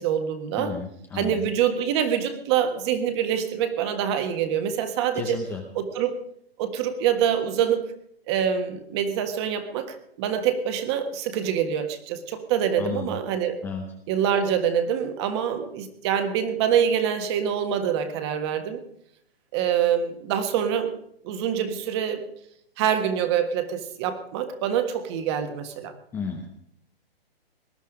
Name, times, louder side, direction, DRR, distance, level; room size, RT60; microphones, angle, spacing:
voice 1, 0.0-0.8 1.1-5.4 5.7-6.2 6.6-7.9 8.3-13.6 14.1-18.8 19.5-20.9 21.2-22.2 22.8-25.9, right 8 dB, 25° right, 8 dB, 1.5 m, -25 dB
voice 2, 0.6-1.5 5.1-5.6 12.8-13.2 13.6-13.9 26.1-26.6, left 5 dB, 5° left, 2 dB, 0.7 m, -33 dB
19.5 x 11.5 x 5.1 m, 0.70 s
hypercardioid pair, 165°, 31 cm